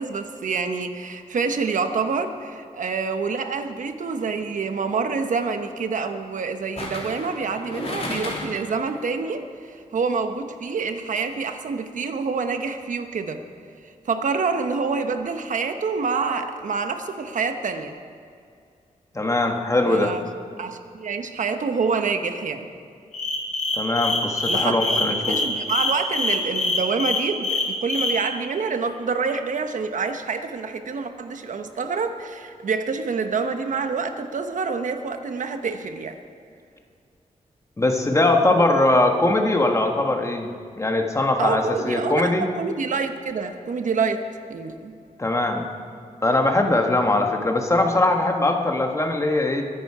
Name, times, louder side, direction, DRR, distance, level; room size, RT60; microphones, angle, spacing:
voice 1, 0.0-13.4 13.8-17.9 19.9-20.2 20.6-22.7 24.5-25.0 25.3-36.2 38.1-38.6 41.4-45.0, right 5 dB, 75° right, 7 dB, 1.1 m, -27 dB
sound 1, 4.1-4.4 6.8-8.7 9.1-9.2, left 2 dB, 50° left, 2.8 m, -33 dB
voice 2, 19.1-20.1 23.7-25.4 37.8-40.5 40.8-42.5 45.2-45.7 46.2-49.6, left 2 dB, 20° left, 3 dB, 1.4 m, -21 dB
sound 2, 23.1-28.2, left 3 dB, 70° left, 3.0 m, -24 dB
22.0 x 10.5 x 4.9 m, 2.4 s
wide cardioid pair, 125°, 13 cm